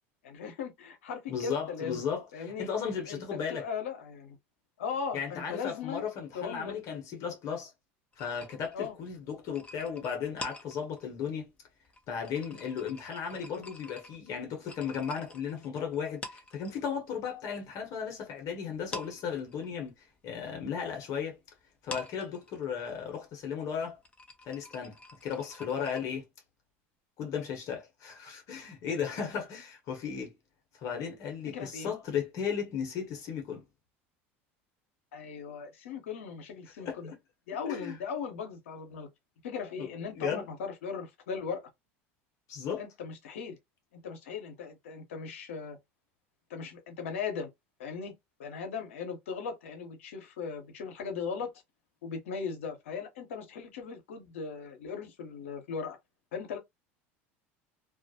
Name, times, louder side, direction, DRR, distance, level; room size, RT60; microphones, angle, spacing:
voice 1, 0.2-2.0 2.3-2.7 3.1-4.4 4.8-6.0 6.3-7.0 8.7-8.9 31.5-31.9 35.1-37.1 37.5-39.1 39.4-41.6 42.8-43.6 43.9-45.8 46.5-47.5 47.8-48.1 48.4-51.5 52.0-56.0 56.3-56.6, left 6 dB, 85° left, 0.8 m, -38 dB
voice 2, 1.3-3.6 5.1-7.7 8.2-11.5 12.1-19.9 20.2-21.4 21.8-24.0 24.5-25.0 25.2-26.2 27.2-30.3 30.8-33.6 36.8-37.2 37.7-38.0 39.8-40.4 42.5-42.8, left 7 dB, 55° left, 0.9 m, -35 dB
sound 1, 8.1-17.1 17.4-18.4 18.7-26.0, left 2 dB, 15° left, 0.6 m, -47 dB
2.3 x 2.0 x 2.7 m
hypercardioid pair, 90°, 7 cm